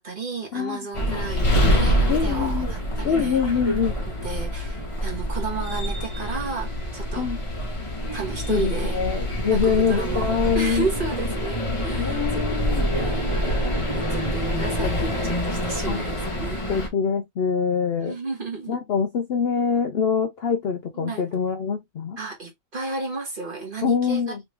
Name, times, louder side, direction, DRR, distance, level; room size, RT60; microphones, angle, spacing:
voice 1, 0.0-3.4 4.2-7.3 8.1-9.0 9.5-12.6 12.9-13.6 13.9-16.6 18.1-18.8 20.9-21.3 22.2-24.2, right 4 dB, 40° right, 1.4 m, -33 dB
voice 2, 0.5-1.3 2.1-2.7 3.0-4.0 7.2-7.4 8.5-10.9 12.0-12.9 15.9-16.0 16.7-18.2 18.7-22.2 23.8-24.4, left 6 dB, 60° left, 0.7 m, -24 dB
sound 1, 0.9-16.9, equal, 25° left, 1.0 m, -26 dB
3.2 x 3.1 x 3.1 m
omnidirectional pair, 1.5 m